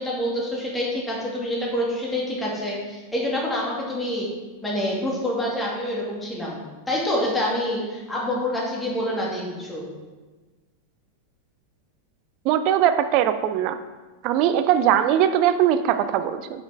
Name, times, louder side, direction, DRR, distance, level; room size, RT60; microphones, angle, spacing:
voice 1, 0.0-4.3 4.6-9.8, left 1 dB, 10° left, -4 dB, 2.4 m, -27 dB
voice 2, 12.4-13.8 14.2-16.6, right 10 dB, 40° right, 11 dB, 0.6 m, -20 dB
7.0 x 6.2 x 4.9 m, 1.3 s
figure-of-eight pair, 90°, 0 cm